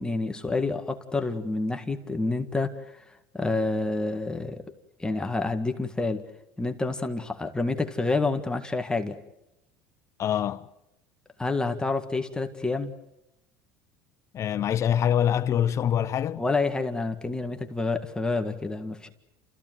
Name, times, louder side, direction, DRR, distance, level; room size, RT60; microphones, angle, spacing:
voice 1, 0.0-3.0 3.3-4.6 5.0-6.2 6.6-9.2 11.4-12.9 16.4-19.1, left 3 dB, 10° left, 1.9 m, -28 dB
voice 2, 10.2-10.7 14.3-16.4, left 9 dB, 40° left, 1.1 m, -25 dB
29.5 x 15.0 x 9.3 m
supercardioid pair, 100°, 7 cm